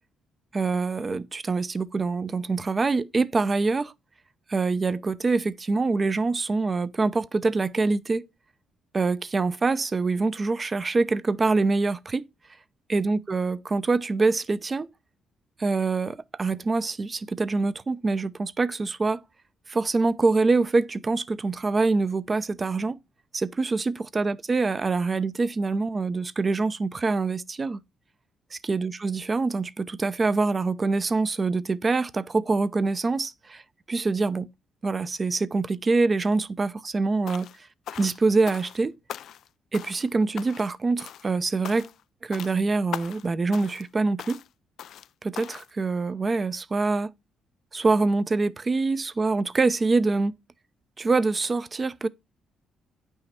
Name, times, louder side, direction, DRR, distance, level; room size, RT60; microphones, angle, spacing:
voice 1, 0.5-3.9 4.5-8.2 8.9-12.2 12.9-14.9 15.6-19.2 19.7-23.0 23.3-27.8 28.7-33.6 33.9-34.5 34.8-37.5 38.0-39.0 39.7-41.9 42.2-44.4 45.2-47.1 47.7-50.3 51.0-52.1, right 3 dB, 30° right, 0.7 m, -25 dB
sound 1, 37.3-37.6 37.9-38.8 39.1-39.5 39.7-40.1 40.4-40.7 41.0-41.3 41.6-42.0 42.3-42.6 42.9-43.3 43.5-43.9 44.2-44.5 44.8-45.1 45.3-45.7, left 10 dB, 70° left, 0.4 m, -39 dB
9.2 x 5.6 x 4.3 m
cardioid pair, 90°, 0 cm